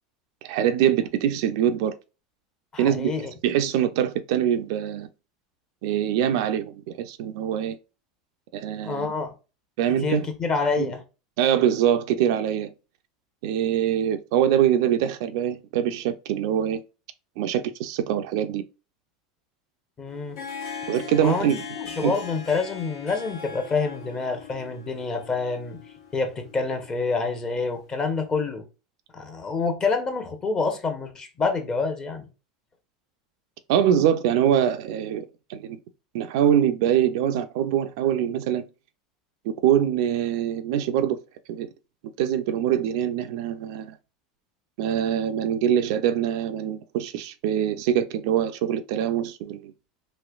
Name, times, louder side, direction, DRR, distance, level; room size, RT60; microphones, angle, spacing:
voice 1, 0.4-1.9 2.8-3.1 3.4-5.1 5.8-7.8 8.5-9.1 9.8-10.3 10.8-10.9 11.4-12.7 13.4-16.8 17.4-18.6 20.9-21.6 22.0-22.2 33.7-35.8 36.1-38.6 39.4-41.2 41.5-41.7 42.2-44.0 44.8-49.7, right 10 dB, 70° right, 0.4 m, -24 dB
voice 2, 2.7-3.3 8.8-9.3 10.0-11.0 20.0-20.4 21.2-25.8 26.1-28.6 29.1-32.3, left 4 dB, 25° left, 0.9 m, -27 dB
Harp, 20.1-27.8, left 6 dB, 70° left, 1.2 m, -40 dB
3.1 x 3.0 x 2.3 m
supercardioid pair, 115°, 3 cm